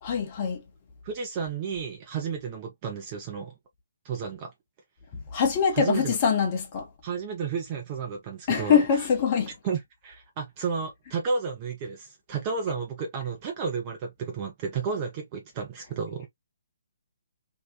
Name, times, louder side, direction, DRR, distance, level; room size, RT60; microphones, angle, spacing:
voice 1, 0.0-0.6 5.3-6.9 8.5-9.5, left 7 dB, 35° left, 0.9 m, -23 dB
voice 2, 1.0-3.5 4.0-4.5 5.7-6.2 7.0-9.1 9.6-16.3, right 5 dB, 30° right, 0.6 m, -32 dB
2.8 x 2.1 x 2.3 m
figure-of-eight pair, 135°, 0 cm